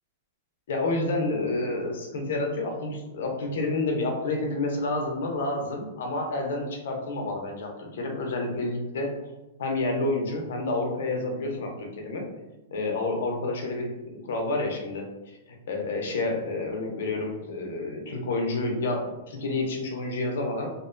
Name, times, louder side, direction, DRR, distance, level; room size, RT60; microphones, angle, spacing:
voice 1, 0.7-9.1 9.6-12.3 12.7-15.4 15.7-20.7, left 2 dB, 70° left, 1 dB, 0.6 m, -29 dB
2.5 x 2.1 x 2.5 m, 1.0 s
supercardioid pair, 160°, 0 cm